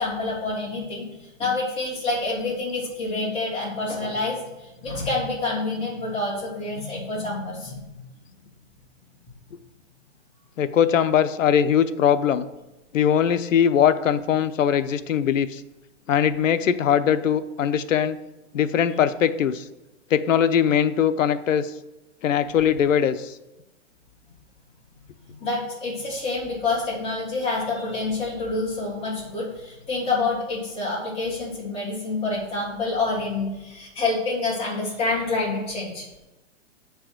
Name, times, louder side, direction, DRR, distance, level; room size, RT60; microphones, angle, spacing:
voice 1, 0.0-8.0 25.4-36.1, left 3 dB, 15° left, -6 dB, 3.0 m, -27 dB
voice 2, 10.6-12.5 12.9-15.6 16.1-18.2 18.5-19.6 20.1-21.7 22.2-23.3, left 8 dB, 85° left, 11 dB, 0.8 m, -21 dB
7.7 x 4.7 x 6.1 m, 1.0 s
hypercardioid pair, 160°, 37 cm